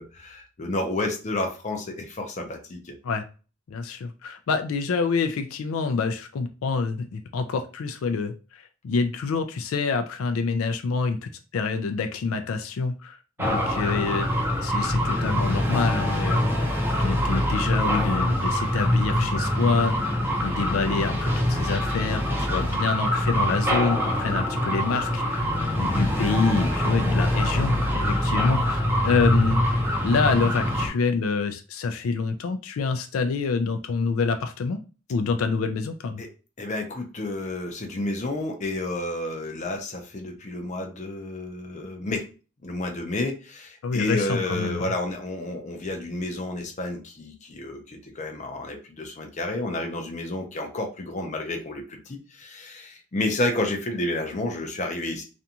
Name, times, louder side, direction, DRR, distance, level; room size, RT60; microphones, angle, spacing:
voice 1, 0.0-2.9 36.2-36.3 36.6-42.3 42.6-55.2, left 2 dB, 35° left, 3 dB, 0.5 m, -30 dB
voice 2, 3.7-16.4 16.9-20.0 20.4-29.6 30.0-34.8 35.1-36.2 43.8-44.9, left 4 dB, 90° left, 7 dB, 0.4 m, -27 dB
sound 1, 13.4-30.9, equal, 10° right, 0.5 m, -24 dB
2.5 x 2.3 x 2.8 m, 0.34 s
head